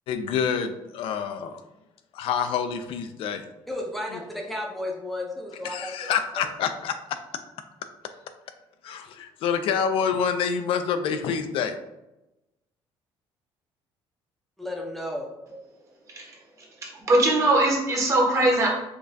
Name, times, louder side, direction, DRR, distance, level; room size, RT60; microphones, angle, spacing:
voice 1, 0.1-1.6 2.1-3.4 5.6-7.2 8.8-11.8, left 7 dB, 65° left, 9 dB, 0.3 m, -27 dB
voice 2, 3.7-6.1 6.4-6.5 14.6-15.3, left 1 dB, ahead, -2 dB, 0.6 m, -33 dB
voice 3, 17.0-18.7, right 2 dB, 30° right, -2 dB, 1.0 m, -20 dB
5.1 x 2.3 x 2.6 m, 0.94 s
cardioid pair, 145°, 10 cm